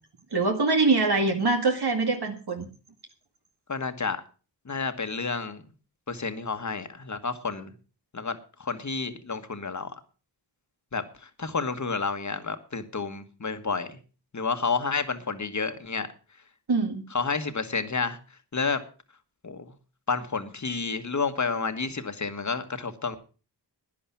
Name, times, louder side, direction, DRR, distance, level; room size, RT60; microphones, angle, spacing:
voice 1, 0.3-2.7 16.7-17.0, right 3 dB, 65° right, 4 dB, 2.1 m, -24 dB
voice 2, 3.7-4.2 4.6-5.6 6.1-7.7 8.1-9.9 10.9-14.0 14.3-16.1 17.1-18.2 18.5-18.8 19.4-19.7 20.1-23.2, left 4 dB, 40° left, 9 dB, 1.5 m, -30 dB
11.5 x 10.0 x 5.8 m, 0.36 s
wide cardioid pair, 70°, 42 cm